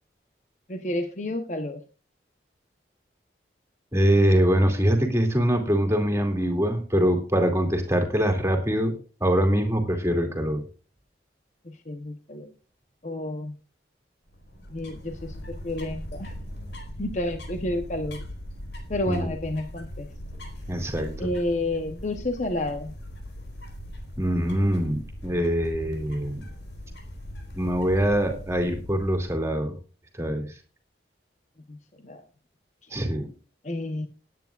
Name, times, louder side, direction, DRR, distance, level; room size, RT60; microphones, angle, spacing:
voice 1, 0.7-1.8 11.6-12.5 13.0-13.5 14.7-16.4 17.0-18.2 18.9-20.1 21.2-22.9 31.7-32.2 33.6-34.1, left 1 dB, 40° left, 6 dB, 1.0 m, -30 dB
voice 2, 3.9-10.6 19.1-19.3 20.7-21.3 24.2-26.4 27.5-29.8 30.2-30.5 32.9-33.3, equal, 15° right, 4 dB, 2.5 m, -23 dB
sound 1, 14.3-29.5, equal, 80° left, 4.1 m, -40 dB
20.5 x 9.4 x 2.5 m, 0.35 s
head